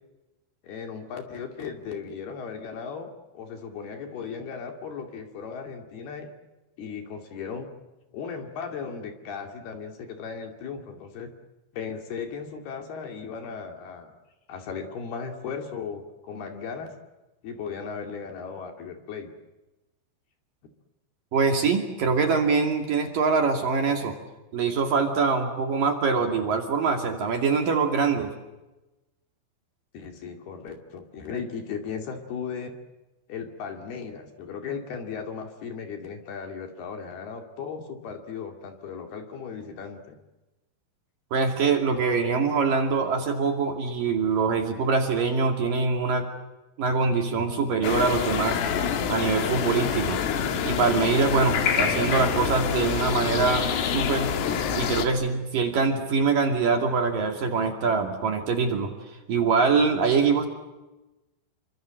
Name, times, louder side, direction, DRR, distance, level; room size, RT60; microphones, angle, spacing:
voice 1, 0.6-6.3 6.8-7.7 8.1-11.3 11.7-14.1 14.5-16.9 17.4-19.3 29.9-32.7 33.3-40.2, left 6 dB, 55° left, 5 dB, 4.1 m, -36 dB
voice 2, 21.3-24.1 24.5-28.3 41.3-46.3 46.8-48.6 49.1-50.2 50.6-54.3 54.7-58.9 59.3-60.5, right 4 dB, 50° right, 4 dB, 3.6 m, -24 dB
sound 1, 47.8-55.1, left 7 dB, 85° left, 4.8 m, -26 dB
28.5 x 25.0 x 7.7 m, 1.0 s
omnidirectional pair, 5.7 m